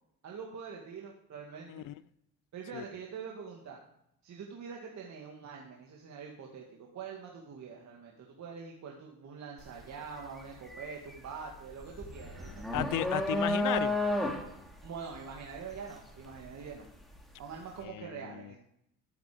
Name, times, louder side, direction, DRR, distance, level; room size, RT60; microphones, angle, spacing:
voice 1, 0.2-1.8 2.5-3.8 4.2-12.7 14.8-16.9 17.4-18.6, right 6 dB, 50° right, 0 dB, 2.3 m, -44 dB
sound 1, 9.6-9.8 10.2-17.2, left 1 dB, ahead, 2.9 m, -33 dB
voice 2, 12.7-13.9 17.8-18.6, left 15 dB, 65° left, 19 dB, 0.7 m, -34 dB
12.5 x 9.7 x 5.1 m, 0.74 s
cardioid pair, 95°, 35 cm